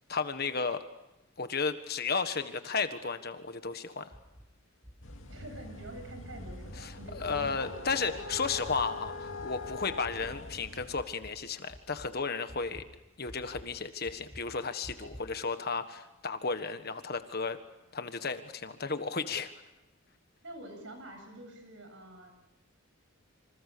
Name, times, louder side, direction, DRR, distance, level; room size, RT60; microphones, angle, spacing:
voice 1, 0.1-0.8 1.4-4.1 6.8-12.8 13.2-17.6 17.9-19.5, left 4 dB, 45° left, 9 dB, 1.5 m, -34 dB
sound 1, 4.1-4.5 4.8-5.3 5.6-5.9 6.3-6.8 7.1-7.5 7.8-8.2 8.6-9.0 9.4-9.9 10.2-10.6 11.0-11.4 11.7-12.1 12.5-12.9 13.3-13.7 14.1-14.5 14.8-15.3, equal, 20° right, 7.5 m, -49 dB
sound 2, 5.0-11.0, left 3 dB, 65° left, 2.5 m, -42 dB
voice 2, 5.3-7.6 15.0-15.1 20.4-22.3, right 1 dB, 60° right, 5 dB, 7.9 m, -47 dB
27.5 x 26.5 x 6.9 m, 0.93 s
head